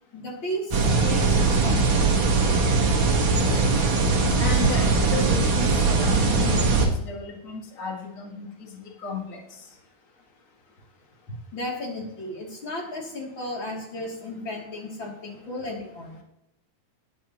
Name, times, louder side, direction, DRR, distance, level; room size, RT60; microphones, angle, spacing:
voice 1, 0.1-2.1 11.5-16.2, left 1 dB, 30° left, -2 dB, 3.0 m, -34 dB
sound 1, 0.7-6.9, right 3 dB, 65° right, 1.2 m, -21 dB
voice 2, 4.4-9.4, left 4 dB, 80° left, -1 dB, 0.7 m, -34 dB
18.5 x 9.6 x 3.0 m, 0.86 s
omnidirectional pair, 4.8 m